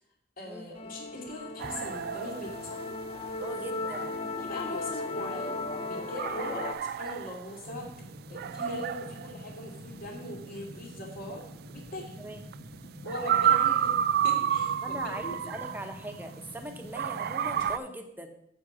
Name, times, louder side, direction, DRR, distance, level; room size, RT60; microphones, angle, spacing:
voice 1, 0.4-2.8 4.4-5.5 5.9-7.9 8.3-12.2 13.0-14.0 14.2-15.4, left 1 dB, 50° left, -2 dB, 2.6 m, -40 dB
Musical instrument, 0.7-6.7, left 3 dB, 30° left, 0.7 m, -36 dB
sound 1, 1.6-16.5 16.9-17.8, right 9 dB, 55° right, 0.3 m, -31 dB
voice 2, 3.4-4.2 12.2-12.5 14.8-18.3, right 1 dB, 10° right, 5 dB, 0.9 m, -41 dB
sound 2, 7.6-17.6, left 1 dB, 80° left, 1.5 m, -47 dB
7.8 x 5.3 x 7.2 m, 0.73 s
head